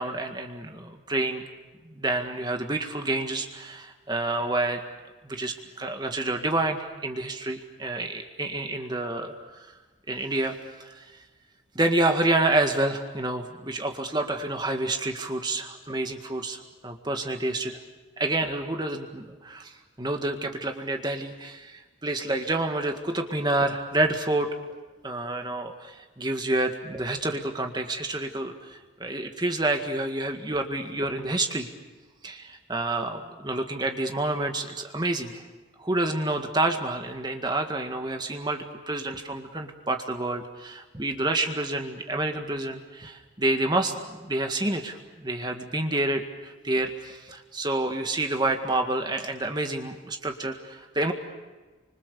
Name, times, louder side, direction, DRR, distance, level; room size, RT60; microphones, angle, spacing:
voice 1, 0.0-1.5 1.9-4.8 5.2-9.7 10.1-10.5 10.8-11.1 11.8-17.8 18.2-24.5 25.0-31.7 32.2-35.4 35.8-51.1, right 2 dB, 20° right, 4 dB, 1.9 m, -28 dB
29.5 x 25.5 x 6.9 m, 1.3 s
head